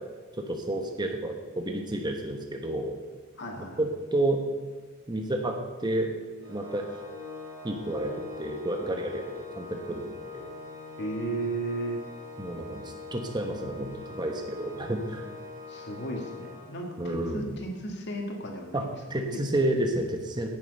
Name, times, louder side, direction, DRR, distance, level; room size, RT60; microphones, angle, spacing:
voice 1, 0.4-3.0 3.6-4.4 5.1-6.1 6.5-6.9 7.6-10.5 12.4-15.2 17.0-17.6 18.7-18.8 19.1-20.5, right 1 dB, 20° right, 3 dB, 1.2 m, -30 dB
voice 2, 3.4-3.9 11.0-12.0 15.7-18.9, right 2 dB, 55° left, 1 dB, 2.1 m, -35 dB
Organ, 6.4-17.2, left 4 dB, 70° right, 2.7 m, -43 dB
16.5 x 7.3 x 5.4 m, 1.4 s
head